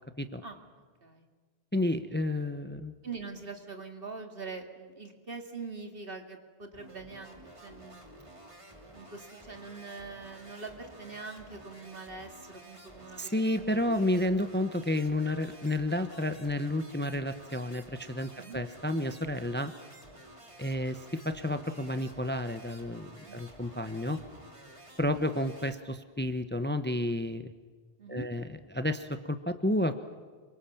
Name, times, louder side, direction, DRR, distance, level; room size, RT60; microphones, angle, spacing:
voice 1, 1.7-2.9 13.2-19.7 20.6-24.2 25.0-27.5 28.1-30.0, left 1 dB, 10° left, 9 dB, 1.0 m, -31 dB
voice 2, 3.0-7.4 7.6-8.0 8.9-13.9 18.4-18.6 23.3-23.4 28.0-28.3, right 4 dB, 60° right, 4 dB, 2.8 m, -43 dB
sound 1, 6.7-25.7, right 1 dB, 30° right, 2.9 m, -52 dB
27.5 x 24.5 x 7.3 m, 1.5 s
omnidirectional pair, 1.1 m